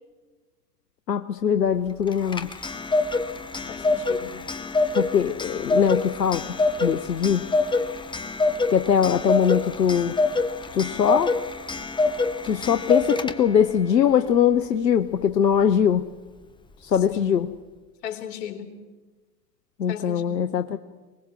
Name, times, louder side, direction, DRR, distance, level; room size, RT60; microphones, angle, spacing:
voice 1, 1.1-2.5 5.0-7.5 8.7-10.1 10.7-11.3 12.4-16.1 16.8-17.5 19.8-20.8, left 8 dB, 90° left, 10 dB, 0.9 m, -22 dB
Clock, 2.1-13.7, left 3 dB, 10° left, 1.1 m, -26 dB
voice 2, 3.7-4.4 17.1-17.3 18.0-18.7 19.9-20.6, left 9 dB, 60° left, 5 dB, 3.6 m, -36 dB
24.0 x 20.5 x 7.4 m, 1.3 s
hypercardioid pair, 100°, 49 cm